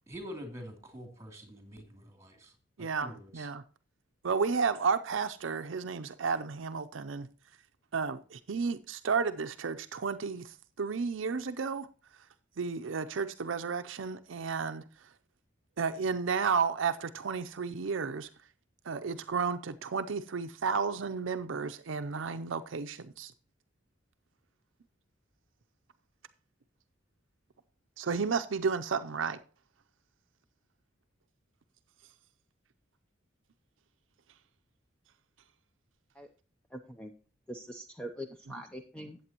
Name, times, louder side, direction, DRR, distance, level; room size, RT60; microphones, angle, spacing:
voice 1, 0.1-2.5 2.8-3.5, equal, 15° right, 2.8 m, -46 dB
voice 2, 2.8-3.6 4.2-7.3 7.9-11.9 12.6-15.1 15.8-18.3 18.8-23.3 28.0-29.4, right 5 dB, 70° right, 0.5 m, -32 dB
voice 3, 36.7-37.1 37.5-39.2, equal, 5° left, 0.6 m, -43 dB
14.0 x 8.3 x 2.9 m
head